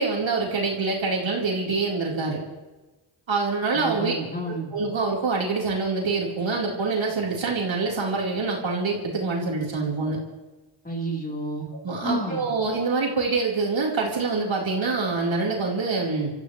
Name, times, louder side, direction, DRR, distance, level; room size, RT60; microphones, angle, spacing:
voice 1, 0.0-2.4 3.3-4.1 4.4-10.2 11.8-16.3, right 4 dB, 70° right, -3 dB, 4.3 m, -25 dB
voice 2, 3.7-4.7 10.8-11.7 12.0-12.4, right 1 dB, 20° left, -1 dB, 4.0 m, -30 dB
29.0 x 14.5 x 3.3 m, 1.1 s
cardioid pair, 60°, 47 cm